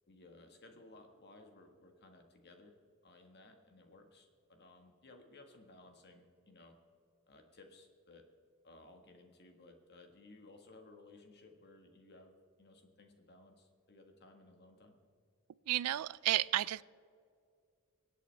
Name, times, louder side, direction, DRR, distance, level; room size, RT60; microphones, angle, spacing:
voice 1, 0.1-2.7 3.0-6.8 7.3-8.2 8.6-15.0, left 2 dB, 50° left, 4 dB, 1.6 m, -59 dB
voice 2, 15.7-16.8, right 14 dB, 90° right, 20 dB, 0.4 m, -32 dB
25.0 x 8.5 x 3.4 m, 2.3 s
head